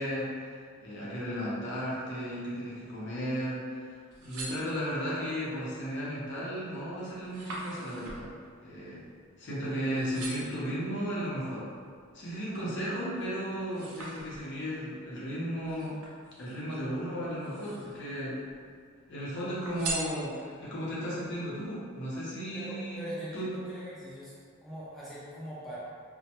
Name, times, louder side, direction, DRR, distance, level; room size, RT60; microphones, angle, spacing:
voice 1, 0.0-8.3 8.6-9.0 9.4-11.7 12.1-16.0 16.4-18.4 19.1-23.0 23.3-23.5, equal, 55° left, -7 dB, 0.6 m, -35 dB
sound 1, 3.9-5.2 5.8-6.2 6.6-9.7 10.0-10.7 11.3-12.8 13.2-14.7 15.6-16.8 17.3-18.1 18.4-19.2 19.6-20.7 21.2-21.3, right 3 dB, 80° right, 0.5 m, -42 dB
voice 2, 22.5-24.3 24.6-25.8, equal, ahead, -10 dB, 0.3 m, -41 dB
2.1 x 2.1 x 2.8 m, 2.1 s
head